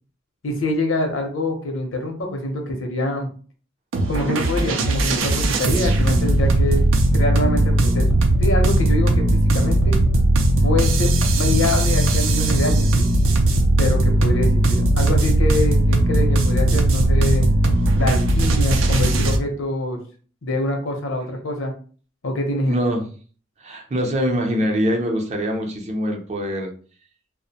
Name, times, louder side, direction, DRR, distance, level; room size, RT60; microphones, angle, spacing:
voice 1, 0.4-3.3 4.1-10.0 10.6-13.1 13.8-17.5 17.9-20.0 20.4-21.7 22.2-22.8, left 1 dB, 75° left, 3 dB, 0.7 m, -25 dB
sound 1, 3.9-19.4, right 1 dB, 90° right, 0.4 m, -18 dB
voice 2, 22.7-23.1 23.6-26.7, equal, 35° right, 2 dB, 0.5 m, -23 dB
2.4 x 2.1 x 2.7 m, 0.41 s
head